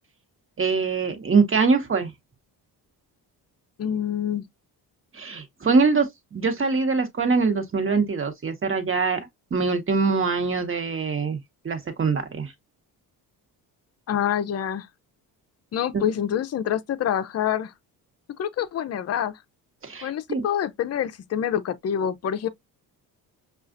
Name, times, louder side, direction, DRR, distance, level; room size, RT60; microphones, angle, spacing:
voice 1, 0.6-2.1 5.1-11.4 11.6-12.5 15.9-16.0 19.8-20.4, right 4 dB, 30° right, 1.2 m, -23 dB
voice 2, 3.8-4.4 14.1-14.9 15.7-17.7 18.4-19.3 20.0-22.5, left 9 dB, 40° left, 0.5 m, -26 dB
5.4 x 2.4 x 2.5 m
cardioid pair, 100°, 39 cm